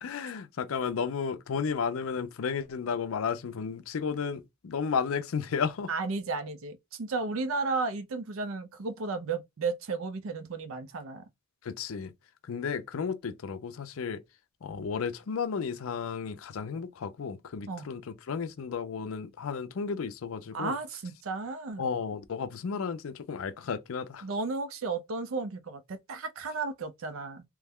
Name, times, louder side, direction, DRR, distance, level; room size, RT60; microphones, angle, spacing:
voice 1, 0.0-5.9 11.6-12.1 12.4-14.2 14.6-20.7 21.8-24.3, left 6 dB, 75° left, 0.4 m, -33 dB
voice 2, 5.9-11.2 17.7-17.9 20.5-21.8 24.2-27.4, right 4 dB, 70° right, 0.5 m, -33 dB
3.0 x 2.2 x 3.5 m
head